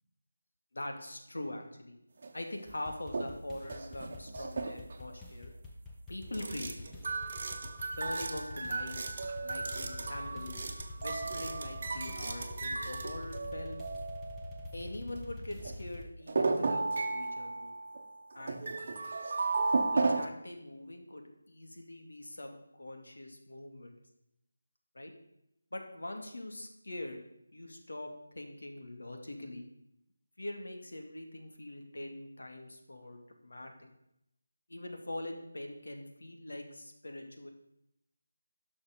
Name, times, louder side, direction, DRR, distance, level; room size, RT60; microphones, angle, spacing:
voice 1, 0.7-2.0 2.3-5.5 6.1-6.9 8.0-10.7 11.0-13.8 14.7-17.7 18.3-18.7 19.9-24.0 24.9-25.1 25.7-27.2 27.5-29.6 30.4-33.9 34.7-37.5, left 1 dB, 85° left, 4 dB, 2.4 m, -43 dB
sound 1, 2.2-2.3 2.9-3.3 3.6-5.1 6.3-14.8 15.2-15.3 15.6-15.8 16.3-20.3, right 3 dB, 35° right, 1.0 m, -34 dB
sound 2, 2.7-16.1, left 1 dB, 5° left, 0.8 m, -46 dB
11.5 x 6.2 x 6.8 m, 0.82 s
figure-of-eight pair, 175°, 0 cm